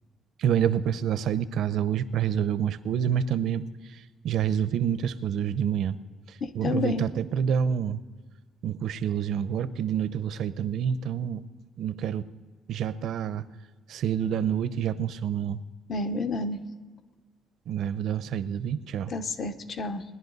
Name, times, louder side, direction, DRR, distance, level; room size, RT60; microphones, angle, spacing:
voice 1, 0.4-3.6 4.2-6.0 6.5-8.0 8.6-11.4 11.8-12.2 12.7-13.4 13.9-15.6 17.7-19.1, right 8 dB, 70° right, 14 dB, 0.6 m, -27 dB
voice 2, 6.4-7.1 15.9-16.6 19.1-20.0, left 3 dB, 40° left, 10 dB, 0.8 m, -30 dB
20.0 x 11.0 x 4.0 m, 1.4 s
cardioid pair, 140°, 0 cm